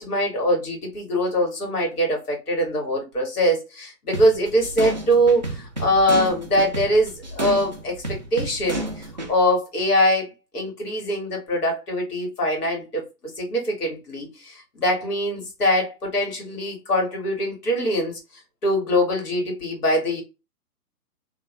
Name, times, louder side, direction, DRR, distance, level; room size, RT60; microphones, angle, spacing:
voice 1, 0.0-13.1 13.4-18.2 18.6-20.2, equal, 70° left, 2.0 m, -23 dB
sound 1, 4.1-9.3, right 2 dB, 35° right, 0.4 m, -31 dB
3.0 x 2.4 x 3.1 m
hypercardioid pair, 145°, 47 cm